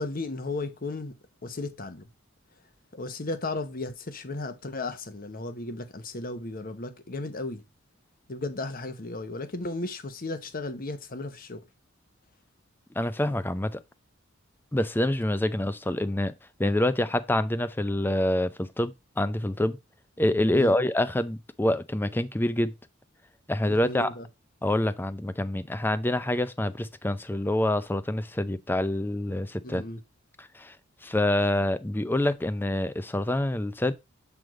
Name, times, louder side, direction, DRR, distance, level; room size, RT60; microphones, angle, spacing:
voice 1, 0.0-2.1 2.9-7.6 8.3-11.6 20.5-20.7 23.7-24.3 29.6-30.0, left 2 dB, 45° left, 1.0 m, -35 dB
voice 2, 13.0-13.8 14.7-16.3 16.6-19.8 20.2-22.7 23.5-24.1 24.6-29.8 30.4-30.7 31.0-33.9, left 1 dB, 10° left, 0.5 m, -26 dB
7.7 x 3.5 x 4.7 m
head